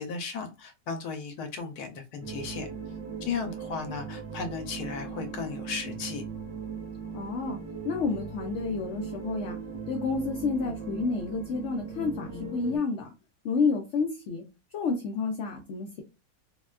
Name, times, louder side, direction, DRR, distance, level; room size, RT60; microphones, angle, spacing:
voice 1, 0.0-2.7 3.2-6.2, left 5 dB, 85° left, 1.1 m, -35 dB
sound 1, 2.2-12.8, right 5 dB, 75° right, 1.6 m, -39 dB
voice 2, 7.1-7.6 7.8-9.6 9.9-13.1 13.4-14.4 14.7-16.0, left 4 dB, 65° left, 0.7 m, -30 dB
4.1 x 2.1 x 2.3 m
omnidirectional pair, 1.6 m